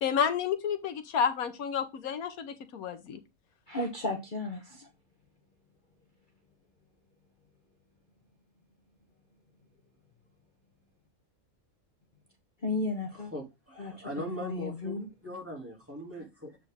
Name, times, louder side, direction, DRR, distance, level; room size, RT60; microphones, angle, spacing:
voice 1, 0.0-3.2, left 7 dB, 85° left, 1.4 m, -30 dB
voice 2, 3.7-4.9 12.6-13.3 13.8-15.1, left 2 dB, 35° left, 1.2 m, -34 dB
voice 3, 13.3-15.0 15.2-16.6, equal, 10° right, 2.5 m, -39 dB
7.7 x 5.1 x 3.6 m
omnidirectional pair, 1.5 m